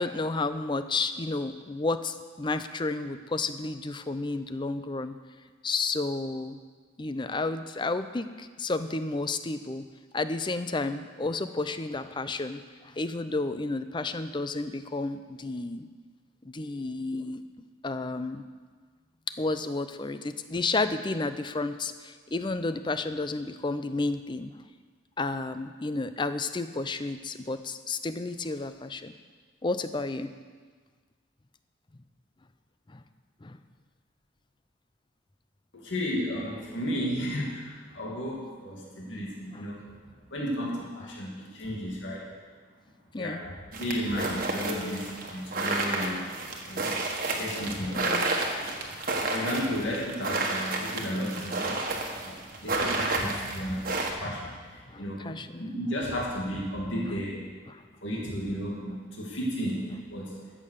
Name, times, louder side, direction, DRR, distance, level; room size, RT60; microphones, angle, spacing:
voice 1, 0.0-5.2 5.6-6.6 7.0-9.8 10.1-15.9 16.4-17.4 17.8-18.4 19.4-24.5 25.2-29.1 29.6-30.3 32.9-33.0 33.4-33.6 39.5-39.7 43.1-43.4 46.7-46.9 47.2-47.4 47.8-48.3 54.9-55.8 57.7-57.8, left 3 dB, 25° left, 11 dB, 0.5 m, -31 dB
voice 2, 35.7-39.8 40.3-42.3 43.1-46.2 46.7-47.0 47.3-48.1 48.6-48.7 49.3-51.8 52.2-55.3 55.6-57.5 58.0-60.4, equal, 65° left, -4 dB, 2.5 m, -33 dB
sound 1, 43.7-54.1, right 2 dB, 45° right, 1.5 m, -31 dB
14.0 x 7.5 x 6.6 m, 1.5 s
head